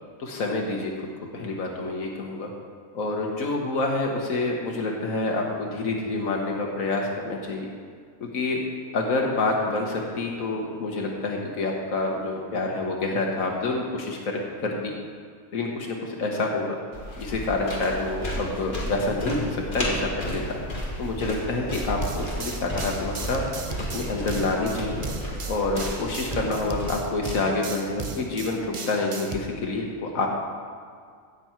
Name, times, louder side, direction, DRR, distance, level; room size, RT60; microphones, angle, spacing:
voice 1, 0.2-0.9 1.3-2.5 2.9-7.7 8.2-8.6 8.9-14.9 15.5-16.7 17.2-20.6 21.0-23.6 23.9-25.0 25.5-30.3, left 2 dB, 85° left, 0 dB, 1.6 m, -27 dB
sound 1, 16.9-26.9, equal, 40° left, 2.1 m, -33 dB
sound 2, 21.7-29.4, right 4 dB, 35° right, 0.5 m, -36 dB
16.5 x 6.9 x 4.5 m, 2.1 s
omnidirectional pair, 1.4 m